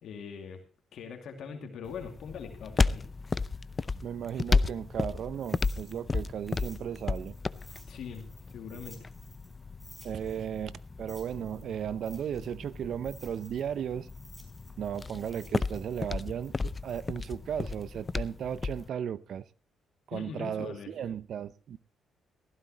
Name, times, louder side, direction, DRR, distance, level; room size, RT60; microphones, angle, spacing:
voice 1, 0.0-0.6 0.9-3.1 7.9-9.1 20.1-20.9, left 6 dB, 70° left, 2.4 m, -42 dB
sound 1, 1.8-18.9, left 4 dB, 30° left, 0.6 m, -34 dB
voice 2, 4.0-7.3 10.0-14.1 14.8-19.4 20.1-21.8, right 9 dB, 65° right, 0.7 m, -35 dB
sound 2, 5.3-9.5 9.8-13.7 14.1-18.2, equal, 10° right, 5.4 m, -56 dB
16.5 x 15.0 x 3.0 m
cardioid pair, 90°, 0 cm